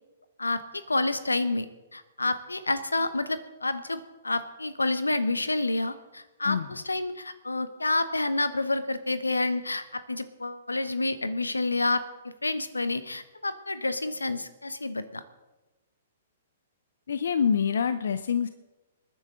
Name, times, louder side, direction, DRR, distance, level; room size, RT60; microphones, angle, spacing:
voice 1, 0.4-1.7 1.9-15.2, left 2 dB, 90° left, 13 dB, 0.9 m, -29 dB
voice 2, 17.1-18.5, left 7 dB, 70° left, 12 dB, 0.6 m, -26 dB
25.5 x 10.0 x 3.8 m, 1.1 s
figure-of-eight pair, 120°, 0 cm